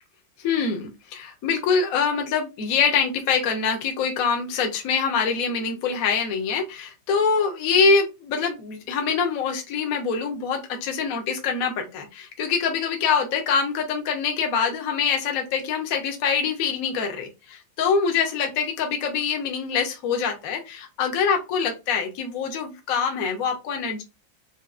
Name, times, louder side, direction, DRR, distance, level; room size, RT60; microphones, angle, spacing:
voice 1, 0.4-24.0, left 5 dB, 55° left, 3 dB, 1.1 m, -24 dB
4.9 x 2.5 x 2.4 m, 0.25 s
omnidirectional pair, 2.2 m